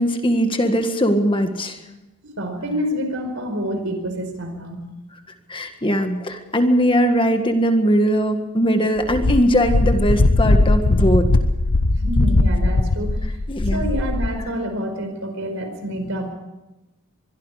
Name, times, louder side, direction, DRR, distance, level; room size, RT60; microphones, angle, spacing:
voice 1, 0.0-1.8 5.5-11.3 13.5-13.9, equal, 25° left, 6 dB, 1.7 m, -20 dB
voice 2, 2.2-4.9 11.9-13.2 13.7-16.3, equal, 60° right, 7 dB, 4.9 m, -27 dB
Wind, 9.1-14.4, left 2 dB, 85° left, 1.1 m, -19 dB
24.0 x 22.5 x 5.0 m, 1.0 s
head